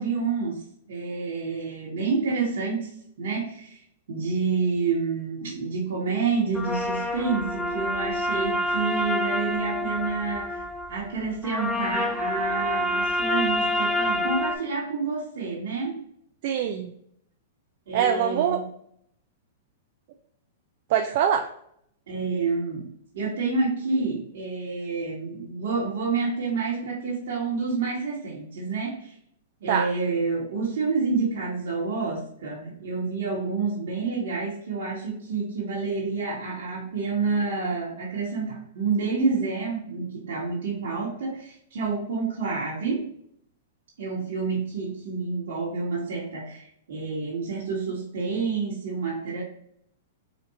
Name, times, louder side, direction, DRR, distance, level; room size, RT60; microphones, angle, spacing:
voice 1, 0.0-2.9 3.2-3.8 4.1-10.6 10.9-16.0 17.9-18.6 22.1-22.9 23.1-29.1 29.6-43.1 44.0-49.4, right 4 dB, 70° right, -6 dB, 1.4 m, -28 dB
sound 1, 6.6-14.6, left 1 dB, 5° left, 0.4 m, -27 dB
voice 2, 16.4-16.9 17.9-18.6 20.9-21.5 29.7-29.8, right 9 dB, 55° right, 4 dB, 0.4 m, -23 dB
4.2 x 2.5 x 2.9 m, 0.68 s
hypercardioid pair, 130°, 0 cm